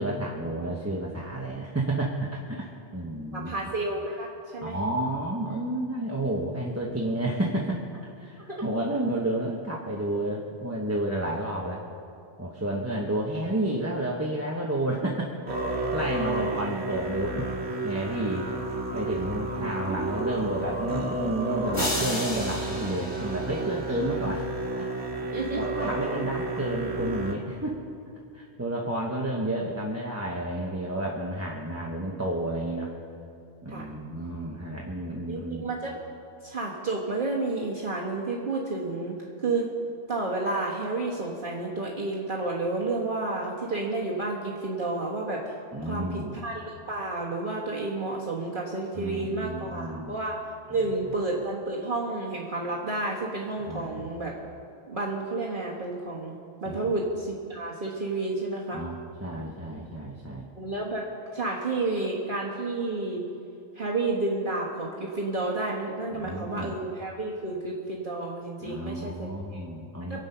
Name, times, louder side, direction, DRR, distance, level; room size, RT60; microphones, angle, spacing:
voice 1, 0.0-3.5 4.6-11.8 12.4-15.3 15.7-18.5 18.9-24.4 24.7-24.9 25.2-27.8 28.3-32.9 33.6-35.7 45.7-46.4 49.0-50.2 50.7-50.9 53.7-54.0 56.7-56.9 58.7-58.9 59.2-60.5 66.2-66.7 68.6-70.2, right 1 dB, 15° right, -3 dB, 1.0 m, -31 dB
voice 2, 3.3-4.8 8.5-8.6 25.3-25.6 33.7-33.9 35.3-36.0 36.4-39.7 40.1-45.6 45.8-50.4 50.7-54.3 54.9-58.8 60.6-61.1 61.3-63.2 63.8-69.6 70.1-70.2, right 2 dB, 50° right, -4 dB, 1.6 m, -31 dB
Musical instrument, 15.5-27.4, right 2 dB, 70° right, 1.7 m, -31 dB
sound 1, 21.7-24.1, left 1 dB, 70° left, 2.7 m, -33 dB
24.0 x 8.2 x 5.6 m, 2.6 s
omnidirectional pair, 1.2 m